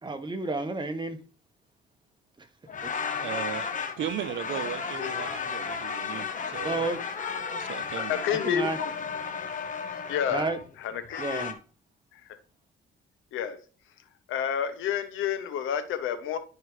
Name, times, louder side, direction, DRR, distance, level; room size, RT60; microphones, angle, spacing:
voice 1, 0.0-1.2 2.4-2.5 2.8-2.9 6.6-7.0 8.3-8.8 10.3-10.6 11.2-11.6, right 3 dB, 25° right, 1.2 m, -31 dB
sound 1, 2.7-11.5, left 6 dB, 40° left, 1.1 m, -34 dB
voice 2, 3.2-3.7 4.0-6.9 7.3-8.2, right 10 dB, 75° right, 0.8 m, -36 dB
voice 3, 8.0-8.9 10.1-10.5 10.8-11.5 12.1-12.2 13.3-13.6 14.3-16.4, left 9 dB, 85° left, 1.0 m, -30 dB
11.0 x 4.8 x 3.3 m
cardioid pair, 90°, 20 cm